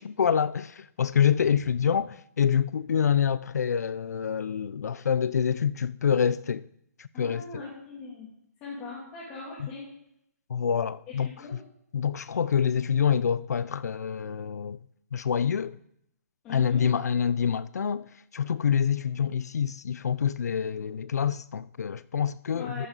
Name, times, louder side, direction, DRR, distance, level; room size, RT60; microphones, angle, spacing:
voice 1, 0.0-6.6 7.0-7.6 9.6-9.7 10.5-11.3 11.9-14.8 15.1-15.8 16.5-22.9, left 7 dB, 70° left, 0.6 m, -26 dB
voice 2, 7.1-8.3 8.6-9.9 11.1-11.6 16.4-16.9 22.5-22.9, left 4 dB, 15° left, 2.8 m, -40 dB
14.0 x 13.5 x 4.1 m
hypercardioid pair, 175°, 9 cm